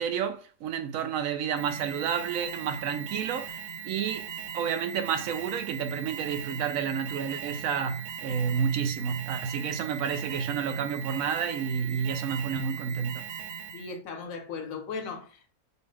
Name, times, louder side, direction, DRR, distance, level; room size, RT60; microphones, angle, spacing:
voice 1, 0.0-4.3 4.5-13.2, right 7 dB, 85° right, 1.0 m, -30 dB
Alarm, 1.6-14.0, right 7 dB, 65° right, 0.8 m, -39 dB
voice 2, 13.7-15.5, left 5 dB, 85° left, 1.2 m, -37 dB
5.3 x 2.3 x 3.2 m
omnidirectional pair, 1.4 m